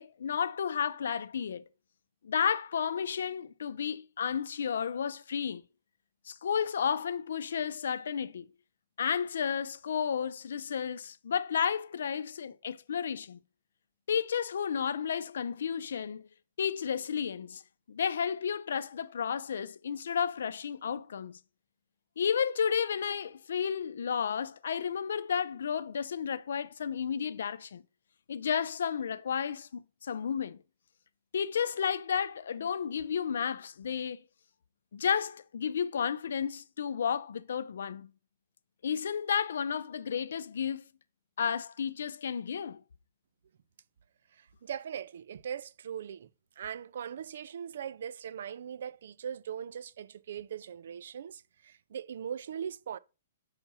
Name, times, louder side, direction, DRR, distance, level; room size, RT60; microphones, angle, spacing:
voice 1, 0.0-1.6 2.2-5.6 6.3-8.5 9.0-13.4 14.1-16.3 16.6-17.6 17.9-21.4 22.2-27.8 28.3-30.6 31.3-34.2 34.9-38.1 38.8-40.8 41.4-42.8, left 7 dB, 85° left, 0.6 m, -32 dB
voice 2, 44.3-46.3 46.6-53.0, right 8 dB, 65° right, 0.3 m, -40 dB
6.8 x 5.7 x 4.1 m
hypercardioid pair, 170°, 0 cm